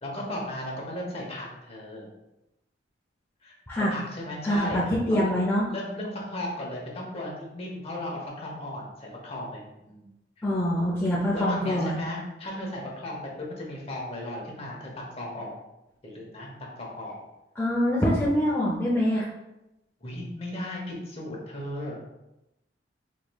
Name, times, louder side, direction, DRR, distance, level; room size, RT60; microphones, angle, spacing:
voice 1, 0.0-2.1 3.4-3.6 3.9-5.3 5.7-10.1 10.4-10.5 11.3-15.5 16.0-16.5 16.8-17.2 17.9-18.1 20.0-22.0, left 1 dB, 35° left, -2 dB, 0.9 m, -36 dB
voice 2, 4.4-5.6 10.4-12.0 17.6-19.3, equal, 15° left, -6 dB, 0.5 m, -24 dB
4.9 x 3.0 x 2.3 m, 0.92 s
head